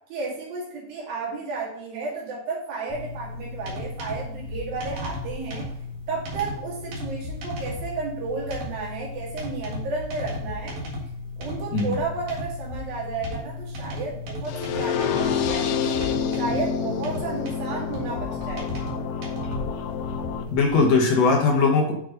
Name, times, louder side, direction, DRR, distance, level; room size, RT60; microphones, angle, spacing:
voice 1, 0.1-5.7 6.1-10.8 11.4-16.0 16.3-18.9, right 4 dB, 85° right, -4 dB, 3.9 m, -32 dB
sound 1, 2.9-20.8, left 2 dB, 60° right, 2.8 m, -35 dB
voice 2, 11.7-12.0 20.5-21.9, left 4 dB, 60° left, 0 dB, 1.9 m, -20 dB
sound 2, 14.5-20.4, left 7 dB, 85° left, 2.3 m, -28 dB
8.8 x 3.9 x 3.8 m, 0.70 s
omnidirectional pair, 4.0 m